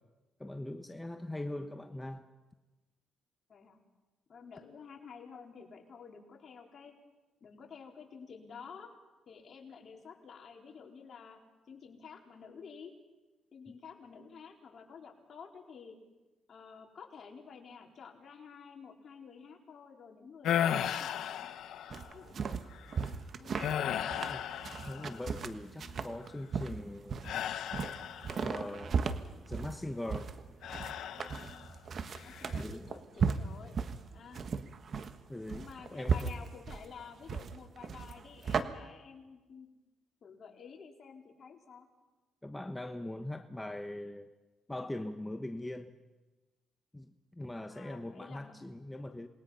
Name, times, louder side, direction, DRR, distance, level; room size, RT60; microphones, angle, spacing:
voice 1, 0.4-2.2 24.3-24.4 24.9-27.3 28.4-29.0 29.5-30.3 32.6-32.9 33.9-34.0 35.3-35.7 35.9-36.3 42.4-44.3 44.7-46.0 46.9-49.3, left 1 dB, 10° left, 6 dB, 1.1 m, -41 dB
voice 2, 4.3-6.9 7.4-8.9 9.3-11.4 11.7-12.9 13.5-16.0 16.5-21.6 22.1-22.5 23.4-23.6 25.8-26.0 32.1-33.8 34.1-34.4 35.5-39.7 40.2-41.9 47.7-48.5, left 6 dB, 50° left, 1 dB, 3.9 m, -51 dB
sound 1, 20.4-22.2 22.7-23.0 23.6-25.4 27.2-28.6 30.6-31.7 32.2-32.6, left 10 dB, 75° left, 1.0 m, -35 dB
sound 2, 21.9-38.6, right 5 dB, 50° right, 1.4 m, -36 dB
27.5 x 20.5 x 5.7 m, 1.2 s
cardioid pair, 90°, 0 cm